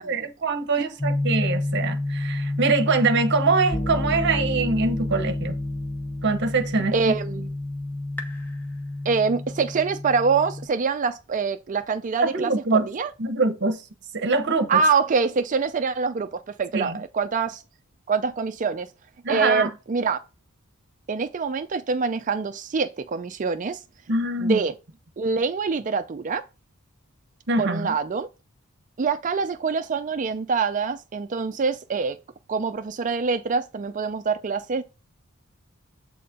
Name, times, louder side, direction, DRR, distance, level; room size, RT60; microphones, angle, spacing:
voice 1, 0.0-5.6 6.2-7.1 12.2-12.9 13.2-13.8 14.1-14.8 16.7-17.0 19.2-19.7 24.1-24.6 27.5-27.9, right 3 dB, 55° right, 0.9 m, -23 dB
sound 1, 1.0-10.7, left 1 dB, 10° left, 0.9 m, -29 dB
voice 2, 6.9-7.5 9.0-13.1 14.7-17.6 18.1-18.9 19.3-20.2 21.1-23.8 24.4-24.7 25.2-26.4 27.6-28.3 29.0-32.2 32.5-34.8, right 5 dB, 35° right, 0.4 m, -25 dB
7.5 x 4.2 x 3.6 m
head